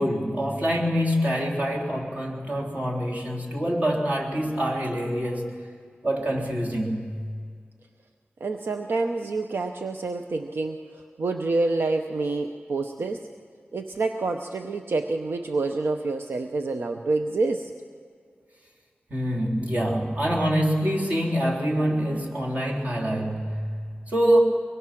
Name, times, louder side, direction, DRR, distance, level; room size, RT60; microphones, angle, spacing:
voice 1, 0.0-5.7 6.0-7.2 19.1-24.4, equal, 40° right, -2 dB, 3.5 m, -25 dB
voice 2, 8.4-13.2 13.7-17.7, right 3 dB, 75° right, 5 dB, 0.9 m, -27 dB
24.0 x 22.0 x 6.0 m, 2.1 s
wide cardioid pair, 85°, 4 cm